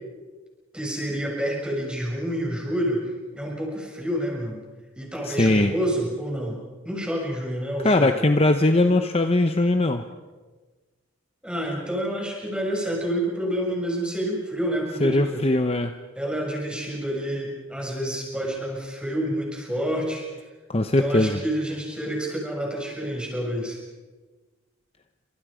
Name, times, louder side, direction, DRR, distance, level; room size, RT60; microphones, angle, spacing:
voice 1, 0.7-3.1 3.3-4.6 5.0-6.6 6.8-8.1 11.4-15.4 16.1-20.2 21.0-23.8, equal, 5° right, -1 dB, 6.6 m, -28 dB
voice 2, 5.2-5.7 7.8-10.0 15.0-15.9 20.7-21.4, left 2 dB, 30° left, 7 dB, 0.9 m, -20 dB
28.5 x 26.0 x 5.1 m, 1.3 s
head